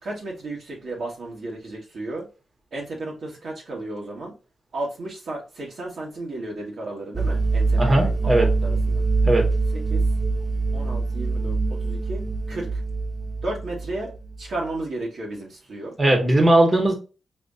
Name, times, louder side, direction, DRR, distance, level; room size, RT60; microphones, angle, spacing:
voice 1, 0.0-2.3 2.7-4.3 4.7-8.3 8.6-9.0 9.9-10.0 10.7-11.6 11.8-12.2 12.5-12.8 13.4-14.1 14.4-15.9, right 2 dB, 65° right, -2 dB, 1.6 m, -33 dB
sound 1, 7.1-14.5, right 3 dB, 10° right, 0.6 m, -24 dB
voice 2, 7.8-8.5 9.2-9.5 16.0-16.9, right 1 dB, 30° right, 2 dB, 1.5 m, -18 dB
4.3 x 2.8 x 2.6 m, 0.32 s
cardioid pair, 55°, 0 cm